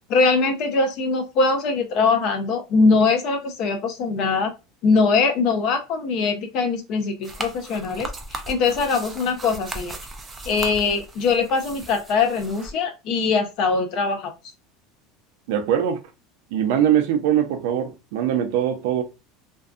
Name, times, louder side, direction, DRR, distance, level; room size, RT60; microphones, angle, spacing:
voice 1, 0.1-4.5 4.8-10.0 10.5-14.3, left 4 dB, 45° left, 0.5 m, -22 dB
sound 1, 7.2-12.7, right 2 dB, 15° right, 0.3 m, -37 dB
voice 2, 15.5-16.0 16.5-19.0, right 10 dB, 65° right, 0.5 m, -22 dB
2.6 x 2.2 x 2.4 m
cardioid pair, 170°, 0 cm